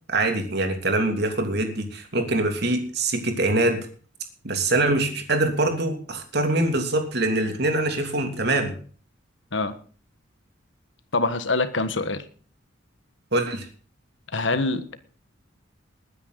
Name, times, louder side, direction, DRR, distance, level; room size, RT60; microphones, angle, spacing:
voice 1, 0.1-3.9 4.4-8.7 13.3-13.7, right 2 dB, 55° right, 5 dB, 2.9 m, -24 dB
voice 2, 11.1-12.2 14.3-15.0, left 3 dB, 70° left, 11 dB, 1.5 m, -25 dB
20.5 x 9.9 x 4.0 m, 0.41 s
head